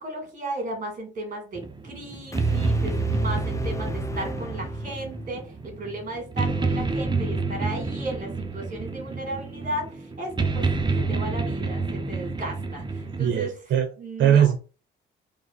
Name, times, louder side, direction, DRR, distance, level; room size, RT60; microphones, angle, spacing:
voice 1, 0.0-10.7 11.0-13.6 14.0-14.5, right 1 dB, 40° right, 3 dB, 2.6 m, -35 dB
sound 1, 1.6-13.4, right 3 dB, 25° right, 0.8 m, -28 dB
sound 2, 2.3-5.4, left 3 dB, 15° left, 0.4 m, -36 dB
voice 2, 13.2-13.9 14.2-14.6, right 9 dB, 70° right, 6 dB, 0.7 m, -20 dB
4.0 x 3.0 x 4.0 m, 0.35 s
cardioid pair, 90°, 20 cm